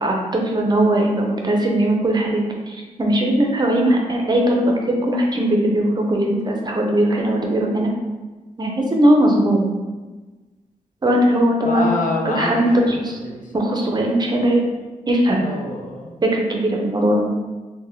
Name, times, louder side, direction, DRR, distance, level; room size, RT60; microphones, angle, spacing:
voice 1, 0.0-7.9 8.6-9.6 11.0-11.9 12.2-13.2 13.5-14.6 15.1-15.4 16.2-17.2, right 1 dB, 30° right, 0 dB, 0.5 m, -19 dB
voice 2, 11.6-13.6 15.4-16.2, left 2 dB, 75° left, -1 dB, 0.6 m, -27 dB
3.1 x 2.1 x 2.7 m, 1.2 s
cardioid pair, 75°, 14 cm